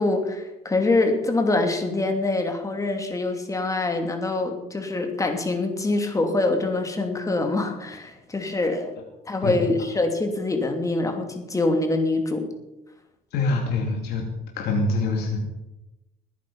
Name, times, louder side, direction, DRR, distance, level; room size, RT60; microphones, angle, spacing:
voice 1, 0.0-8.9 9.3-12.5, left 2 dB, 20° left, 5 dB, 2.8 m, -24 dB
voice 2, 13.3-14.2 14.6-15.4, left 3 dB, 80° left, 1 dB, 2.8 m, -24 dB
20.5 x 10.0 x 5.5 m, 0.99 s
cardioid pair, 110°, 17 cm